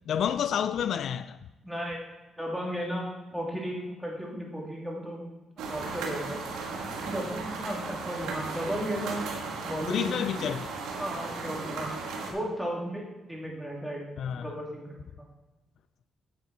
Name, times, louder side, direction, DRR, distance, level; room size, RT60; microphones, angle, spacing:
voice 1, 0.1-1.4 9.9-10.7 14.2-14.6, left 9 dB, 65° left, 0.3 m, -29 dB
voice 2, 1.6-2.0 2.4-3.0 3.3-5.2 5.7-6.4 7.0-9.3 9.6-10.5 11.0-11.9 12.3-13.0 13.3-14.0 14.3-14.9, equal, ahead, 2.9 m, -34 dB
sound 1, 5.6-12.3, right 4 dB, 90° right, 1.8 m, -36 dB
9.4 x 7.5 x 4.3 m
cardioid pair, 90°, 0 cm